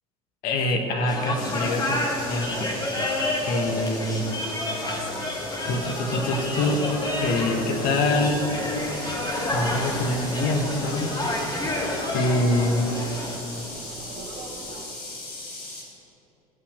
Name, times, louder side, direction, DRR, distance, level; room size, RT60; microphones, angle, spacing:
voice 1, 0.4-2.7 3.5-4.2 5.5-6.8 7.2-8.4 9.5-11.1 12.1-12.9, left 2 dB, 50° left, 3 dB, 1.4 m, -25 dB
sound 1, 1.1-13.4, left 1 dB, 20° left, 1.9 m, -29 dB
sound 2, 1.4-15.8, left 2 dB, 70° left, 2.5 m, -39 dB
sound 3, 8.6-14.9, right 3 dB, 45° right, 1.9 m, -41 dB
14.5 x 5.7 x 6.5 m, 2.9 s
figure-of-eight pair, 65°, 19 cm